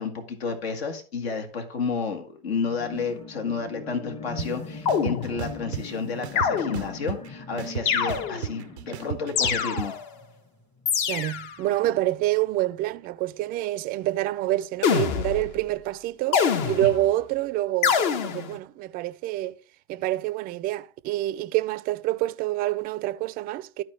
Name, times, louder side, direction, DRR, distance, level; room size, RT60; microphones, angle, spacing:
voice 1, 0.0-10.0 16.8-16.9, left 5 dB, 70° left, 1.7 m, -31 dB
sound 1, 2.6-10.4 10.8-10.9, left 3 dB, 15° left, 0.9 m, -41 dB
sound 2, 4.4-4.5 4.9-5.8 6.2-7.3 7.6-9.9, right 11 dB, 85° right, 0.5 m, -33 dB
sound 3, 4.9-5.7 6.4-7.1 7.9-8.6 9.4-10.1 10.9-11.6 14.8-15.6 16.3-17.1 17.8-18.6, left 7 dB, 50° left, 1.1 m, -25 dB
voice 2, 11.1-19.6 19.9-23.8, right 15 dB, 30° right, 0.4 m, -27 dB
13.5 x 4.5 x 3.3 m
hypercardioid pair, 105°, 32 cm